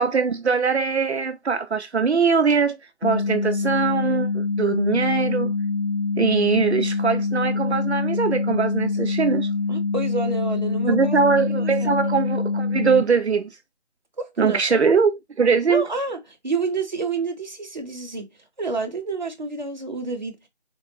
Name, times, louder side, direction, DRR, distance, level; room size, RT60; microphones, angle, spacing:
voice 1, 0.0-5.5 6.2-9.5 10.9-13.5 14.4-15.8, right 5 dB, 75° right, 0.6 m, -22 dB
sound 1, 3.0-13.0, left 4 dB, 40° left, 0.5 m, -25 dB
voice 2, 9.7-11.2 11.6-12.0 14.2-14.9 15.7-18.3 18.6-20.4, right 3 dB, 40° right, 1.0 m, -29 dB
4.2 x 2.4 x 3.3 m
figure-of-eight pair, 170°, 34 cm